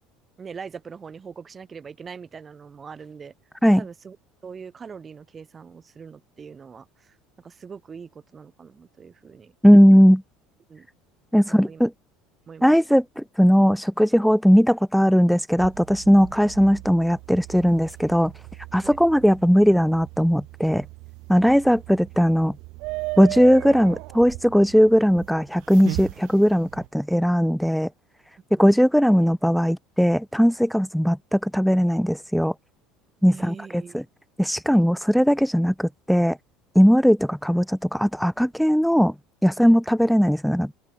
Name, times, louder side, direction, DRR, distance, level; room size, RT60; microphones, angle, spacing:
voice 1, 0.4-3.3 3.8-4.2 4.4-9.5 10.7-10.9 11.5-11.8 12.5-12.7 18.8-19.0 21.4-21.6 28.6-28.7 33.2-34.0 39.6-39.8, right 6 dB, 25° right, 6.8 m, -42 dB
voice 2, 9.6-10.2 11.3-11.9 12.6-18.3 18.7-20.8 21.3-22.6 23.2-27.9 28.6-32.5 33.2-34.0 34.4-36.4 36.7-39.1 39.4-40.7, equal, ahead, 0.6 m, -18 dB
sound 1, 15.6-26.9, right 25 dB, 70° right, 4.7 m, -38 dB
open air
supercardioid pair, 115°, 0 cm